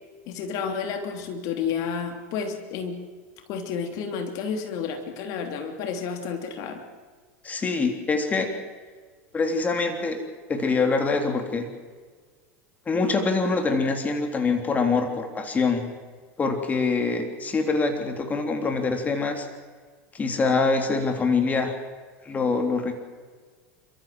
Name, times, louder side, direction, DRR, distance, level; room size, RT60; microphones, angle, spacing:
voice 1, 0.3-3.0 3.5-6.8, left 6 dB, 55° left, 6 dB, 3.1 m, -31 dB
voice 2, 7.4-8.5 9.3-10.2 10.5-11.7 12.8-15.9 16.4-19.5 20.1-21.7 22.2-23.0, left 4 dB, 20° left, 5 dB, 3.3 m, -24 dB
30.0 x 14.0 x 7.7 m, 1.5 s
hypercardioid pair, 110°, 7 cm